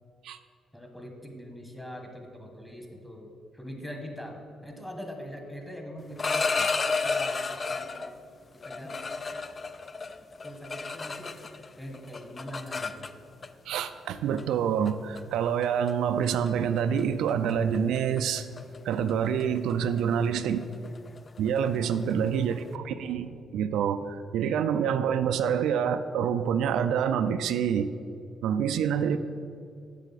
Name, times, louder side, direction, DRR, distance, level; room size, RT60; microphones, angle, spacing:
voice 1, 0.7-8.1 8.6-9.4 10.4-11.4 11.8-13.1 22.0-23.6 29.0-29.2, equal, 5° left, 3 dB, 1.3 m, -43 dB
sound 1, 6.0-8.1 8.6-11.7 11.9-13.5 14.4-14.5 14.9-15.2 15.6-15.9 16.2-16.5 16.8-17.0 17.3-22.7, left 4 dB, 35° left, 0.4 m, -32 dB
voice 2, 13.7-18.4 18.8-20.6 21.4-27.9 28.4-29.2, right 8 dB, 80° right, 10 dB, 0.3 m, -27 dB
8.2 x 6.5 x 4.1 m, 2.4 s
cardioid pair, 90°, 0 cm